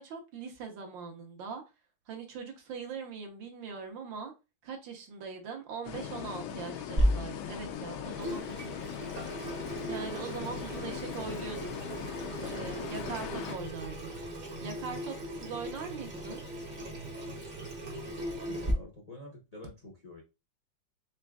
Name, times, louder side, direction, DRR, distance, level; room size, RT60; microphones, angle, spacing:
voice 1, 0.0-1.6 2.1-4.3 4.6-9.1 9.9-11.7 12.4-14.1 14.6-16.4, right 5 dB, 75° right, 1.6 m, -41 dB
sound 1, 5.8-13.6, left 9 dB, 90° left, 1.4 m, -40 dB
Water tap faucet / Sink (filling or washing), 7.0-18.7, equal, 45° right, 0.5 m, -36 dB
voice 2, 18.4-20.2, left 1 dB, 60° left, 0.4 m, -48 dB
4.3 x 3.4 x 2.3 m
omnidirectional pair, 2.1 m